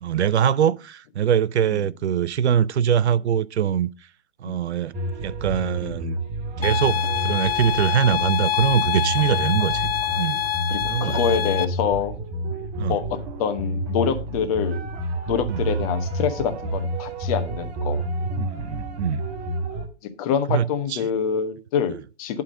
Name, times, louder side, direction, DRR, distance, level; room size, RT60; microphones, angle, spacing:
voice 1, 0.0-3.9 4.4-4.9 5.2-6.2 6.6-9.9 10.2-10.4 10.9-11.2 12.8-13.0 15.5-15.6 18.4-19.2 20.5-21.0, right 9 dB, 70° right, 0.6 m, -23 dB
sound 1, 4.9-19.9, right 1 dB, 20° right, 1.1 m, -29 dB
sound 2, 6.6-11.6, left 10 dB, 55° left, 0.8 m, -26 dB
voice 2, 10.7-12.1 12.9-14.9 15.3-18.0 20.2-22.4, left 7 dB, 30° left, 1.2 m, -26 dB
11.5 x 3.8 x 6.2 m
hypercardioid pair, 140°, 35 cm